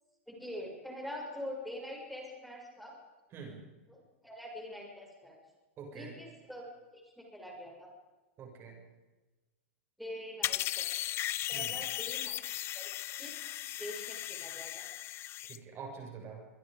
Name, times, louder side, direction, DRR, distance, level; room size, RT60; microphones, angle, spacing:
voice 1, 0.3-3.0 3.9-5.4 5.9-6.7 6.9-7.9 10.0-11.0 11.5-12.4 12.7-12.9 13.2-13.4 13.8-14.9, equal, ahead, -1 dB, 6.6 m, -44 dB
voice 2, 5.8-6.1 8.4-8.7 11.5-11.7 15.5-16.4, right 5 dB, 35° right, 2 dB, 6.7 m, -45 dB
sound 1, 10.4-15.6, left 14 dB, 35° left, 0.8 m, -37 dB
23.5 x 23.5 x 5.2 m, 1.1 s
hypercardioid pair, 120°, 7 cm